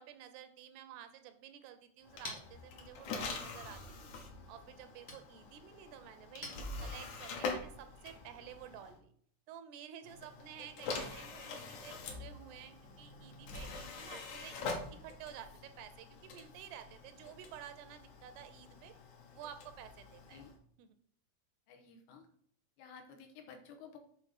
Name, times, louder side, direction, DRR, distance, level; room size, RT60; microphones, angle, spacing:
voice 1, 0.0-4.1 4.5-6.5 6.8-9.1 9.5-14.6 14.9-18.9 19.3-20.4 20.8-20.9, right 10 dB, 80° right, 9 dB, 2.6 m, -52 dB
Chink clink, 1.6-7.3, left 1 dB, 25° left, 1.0 m, -53 dB
sound 1, 2.0-9.0 10.0-20.6, left 4 dB, 60° left, 2.1 m, -45 dB
voice 2, 21.7-22.3 22.8-24.0, left 6 dB, 75° left, 4 dB, 2.9 m, -53 dB
7.8 x 4.0 x 6.4 m, 0.63 s
omnidirectional pair, 4.8 m